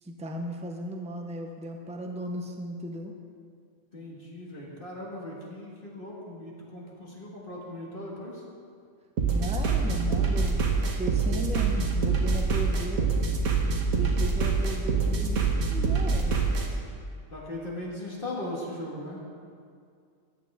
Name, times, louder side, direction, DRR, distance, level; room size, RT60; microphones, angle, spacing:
voice 1, 0.0-3.1 9.3-13.1 13.9-16.3, right 1 dB, 5° right, 2 dB, 0.5 m, -36 dB
voice 2, 3.9-8.4 17.3-19.2, left 1 dB, 40° left, -4 dB, 1.9 m, -38 dB
sound 1, 9.2-16.7, right 4 dB, 90° right, 1.6 m, -25 dB
14.0 x 9.1 x 3.6 m, 2.2 s
omnidirectional pair, 1.4 m